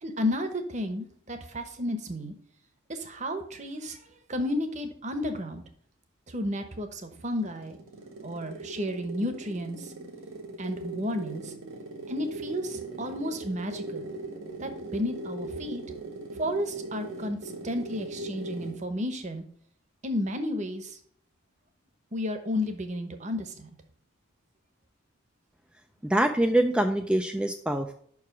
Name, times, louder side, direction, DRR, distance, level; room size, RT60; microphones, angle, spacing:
voice 1, 0.0-2.3 2.9-4.0 4.3-5.6 6.3-7.8 8.2-9.9 10.6-11.5 12.1-14.1 14.6-15.8 16.4-17.4 17.6-19.4 20.0-21.0 22.1-23.7, left 1 dB, 35° right, 7 dB, 0.9 m, -32 dB
sound 1, 7.1-18.9, right 2 dB, 75° right, 1.8 m, -40 dB
voice 2, 26.0-27.9, right 1 dB, 5° right, 5 dB, 0.3 m, -24 dB
5.9 x 4.8 x 5.8 m, 0.63 s
head